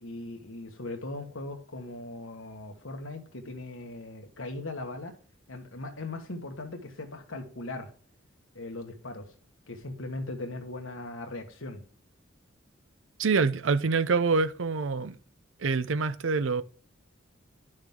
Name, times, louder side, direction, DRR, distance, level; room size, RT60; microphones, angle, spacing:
voice 1, 0.0-5.1 5.5-7.9 8.5-9.3 9.7-11.8, left 2 dB, 85° left, 1.6 m, -39 dB
voice 2, 13.2-15.2 15.6-16.6, right 4 dB, 80° right, 0.6 m, -26 dB
11.0 x 6.4 x 3.7 m
head